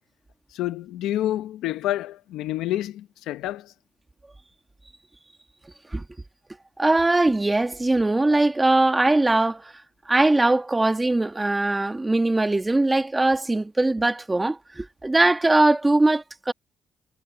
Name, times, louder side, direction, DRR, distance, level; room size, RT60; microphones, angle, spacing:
voice 1, 0.5-3.7, left 14 dB, 90° left, 1.0 m, -28 dB
voice 2, 6.8-9.6 10.1-16.5, right 2 dB, 15° right, 1.9 m, -21 dB
cardioid pair, 90°, 0 cm